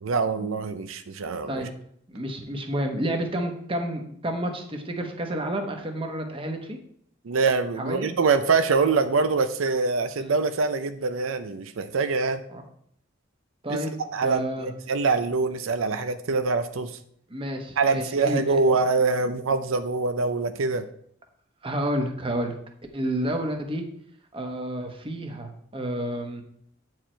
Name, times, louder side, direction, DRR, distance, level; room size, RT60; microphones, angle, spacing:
voice 1, 0.0-1.7 7.2-12.4 13.7-13.8 14.1-17.0 17.8-20.9, right 4 dB, 90° right, 10 dB, 0.5 m, -24 dB
voice 2, 2.1-6.8 7.8-8.1 10.2-10.3 12.5-12.6 13.6-13.9 14.2-14.7 17.3-18.6 21.6-22.6 22.9-23.8 24.3-26.4, right 1 dB, 25° right, 4 dB, 1.0 m, -30 dB
8.9 x 4.7 x 4.4 m, 0.67 s
head